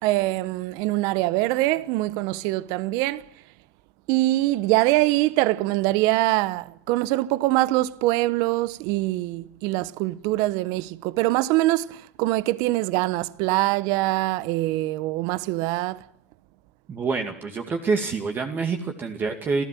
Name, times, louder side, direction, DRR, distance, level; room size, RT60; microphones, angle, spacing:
voice 1, 0.0-3.3 4.1-16.1, right 18 dB, 50° right, 1.0 m, -23 dB
voice 2, 16.9-19.6, right 4 dB, 25° right, 2.3 m, -26 dB
28.0 x 14.5 x 7.6 m
hypercardioid pair, 110°, 8 cm